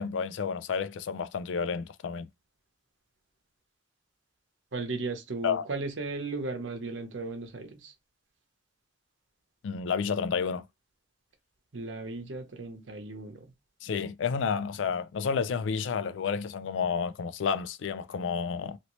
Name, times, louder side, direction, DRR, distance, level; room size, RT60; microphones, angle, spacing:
voice 1, 0.0-2.3 5.4-5.6 9.6-10.6 13.8-18.8, left 6 dB, 75° left, 0.4 m, -30 dB
voice 2, 4.7-7.9 11.7-13.5, right 3 dB, 80° right, 0.8 m, -36 dB
2.9 x 2.8 x 3.0 m
head